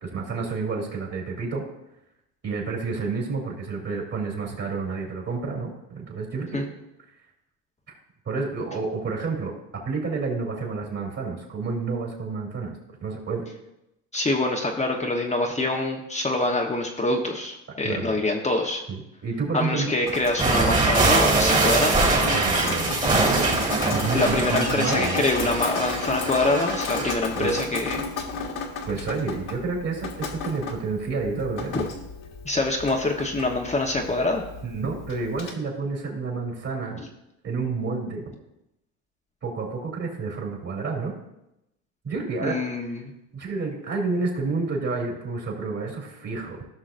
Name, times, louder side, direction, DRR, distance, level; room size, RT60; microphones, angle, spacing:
voice 1, 0.0-1.6 2.4-6.6 7.9-8.0 8.2-12.7 13.0-13.4 17.8-18.1 18.9-19.9 22.3-23.0 23.3-25.3 27.4-27.5 28.9-31.7 34.6-37.0 37.4-38.2 39.4-41.1 42.0-42.7 43.3-46.6, right 4 dB, 40° right, -2 dB, 3.1 m, -29 dB
voice 2, 14.1-18.8 19.5-22.1 24.1-28.0 31.7-31.8 32.4-34.4 42.4-43.1, left 2 dB, 15° left, 1 dB, 1.1 m, -25 dB
Drip, 20.1-35.5, left 4 dB, 55° left, 1.7 m, -33 dB
sound 1, 20.4-27.2, right 3 dB, 20° right, 2.1 m, -23 dB
16.0 x 6.0 x 2.6 m, 0.87 s
supercardioid pair, 85°, 39 cm